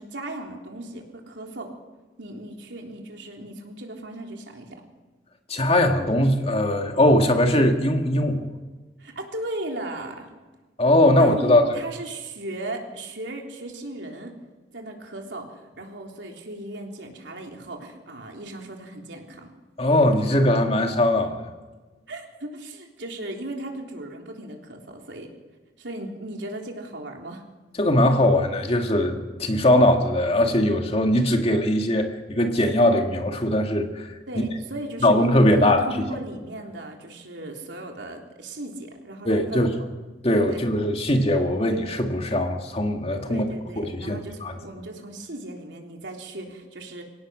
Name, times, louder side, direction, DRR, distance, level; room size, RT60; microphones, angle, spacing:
voice 1, 0.0-1.7 2.2-4.8 9.0-10.3 11.2-14.3 14.7-19.5 22.1-25.3 25.8-27.4 34.3-39.7 40.5-40.7 43.3-47.0, right 1 dB, 90° right, 2 dB, 3.6 m, -36 dB
voice 2, 5.5-8.5 10.8-11.7 19.8-21.5 27.8-34.1 35.0-35.8 39.3-39.7 40.2-43.4 43.8-44.5, left 1 dB, 35° left, 4 dB, 2.1 m, -20 dB
24.5 x 17.5 x 6.4 m, 1.3 s
head